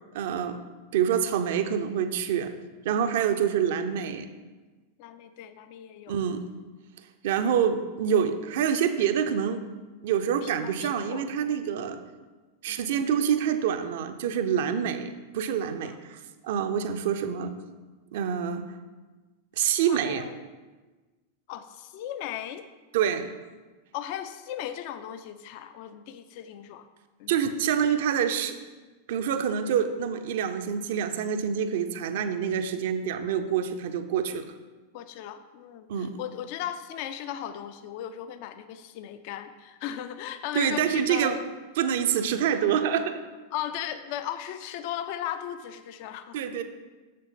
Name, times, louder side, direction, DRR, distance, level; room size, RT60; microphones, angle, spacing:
voice 1, 0.1-0.6 0.9-2.5 2.8-4.3 6.1-6.4 7.2-9.6 10.0-12.0 12.6-16.2 16.4-17.5 18.1-18.6 19.6-20.3 22.9-23.3 27.3-28.6 29.1-34.4 35.9-36.2 40.5-41.4 41.8-43.2 46.3-46.6, right 8 dB, 55° right, 9 dB, 0.6 m, -26 dB
voice 2, 3.0-3.3 5.0-6.5 10.4-11.3 11.7-11.9 12.7-12.8 15.8-16.0 16.7-16.8 19.9-20.4 21.5-22.7 23.9-26.8 27.2-27.4 34.9-41.4 41.8-41.9 43.5-46.4, left 11 dB, 45° left, 10 dB, 0.4 m, -37 dB
7.2 x 6.6 x 3.7 m, 1.3 s
figure-of-eight pair, 90°, 0 cm